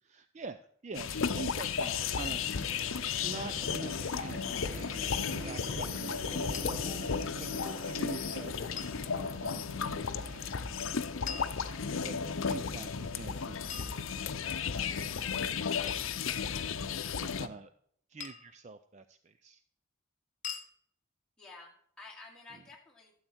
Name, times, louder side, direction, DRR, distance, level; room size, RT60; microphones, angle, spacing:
voice 1, 0.0-2.4 3.2-6.9 7.4-8.5 9.1-10.4 11.3-14.1 14.9-15.6 16.2-16.7 17.2-17.7 18.1-19.6, right 4 dB, 35° right, 11 dB, 0.4 m, -46 dB
sound 1, 0.9-17.5, left 6 dB, 75° left, 0.6 m, -34 dB
Motorcycle, 1.6-14.6, equal, 80° right, 3.2 m, -46 dB
sound 2, 6.5-6.7 8.8-9.0 11.3-12.2 13.7-14.6 15.9-16.2 18.2-18.6 20.4-20.7, left 8 dB, 35° left, 1.1 m, -43 dB
voice 2, 21.4-23.1, left 3 dB, 5° left, -5 dB, 2.6 m, -52 dB
12.5 x 7.8 x 4.4 m, 0.64 s
head